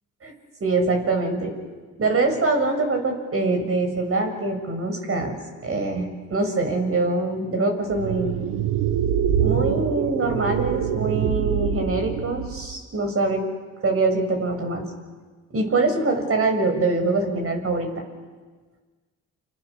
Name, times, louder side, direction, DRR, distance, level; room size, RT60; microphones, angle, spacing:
voice 1, 0.6-1.5 2.0-5.4 5.6-8.4 9.4-13.4 13.8-14.9 15.5-17.9, right 3 dB, 40° right, 4 dB, 7.5 m, -24 dB
sound 1, 7.9-12.7, right 9 dB, 75° right, 1.5 m, -24 dB
29.0 x 29.0 x 7.2 m, 1.4 s
supercardioid pair, 70°, 34 cm